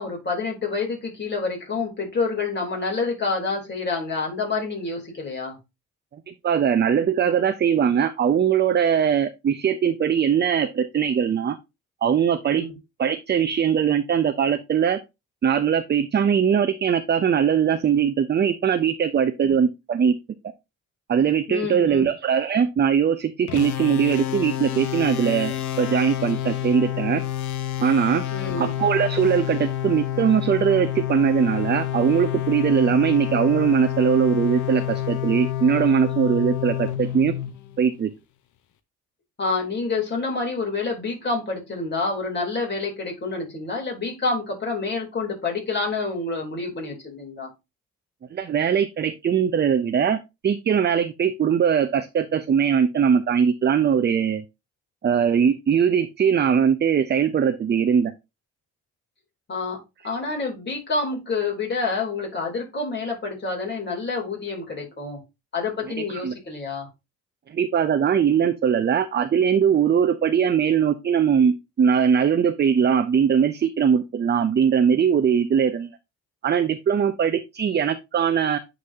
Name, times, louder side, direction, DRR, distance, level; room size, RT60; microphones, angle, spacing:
voice 1, 0.0-5.6 12.5-12.7 19.4-19.6 21.5-22.1 28.3-28.7 39.4-47.5 59.5-59.8 60.0-65.2 65.5-66.9, left 3 dB, 35° left, 0 dB, 3.4 m, -28 dB
voice 2, 6.3-11.6 12.0-12.7 13.0-15.0 15.4-20.2 21.1-27.2 27.8-28.2 28.6-37.3 37.8-38.1 48.3-54.4 55.0-58.1 66.0-66.3 67.5-75.9 76.4-78.6, right 7 dB, 35° right, 10 dB, 0.6 m, -21 dB
sound 1, 23.5-38.0, left 12 dB, 80° left, 0.8 m, -28 dB
9.6 x 4.0 x 2.7 m, 0.24 s
cardioid pair, 90°, 30 cm